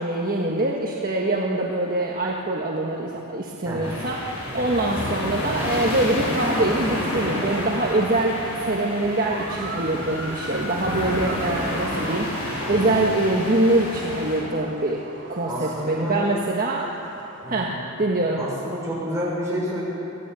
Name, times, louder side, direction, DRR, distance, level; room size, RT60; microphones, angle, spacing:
voice 1, 0.0-12.3 12.7-15.0 15.3-16.9 17.5-17.7 18.0-18.4, right 2 dB, 40° right, -2 dB, 1.6 m, -24 dB
voice 2, 3.6-4.0 4.4-4.7 12.6-13.0 15.5-16.2 17.4-17.7 18.4-19.8, equal, 15° right, -6 dB, 6.5 m, -30 dB
sound 1, 3.8-14.4, left 1 dB, 70° left, 7.4 m, -30 dB
Motor vehicle (road) / Siren, 5.3-17.9, right 3 dB, 60° right, 2.5 m, -39 dB
23.5 x 15.5 x 8.3 m, 2.8 s
head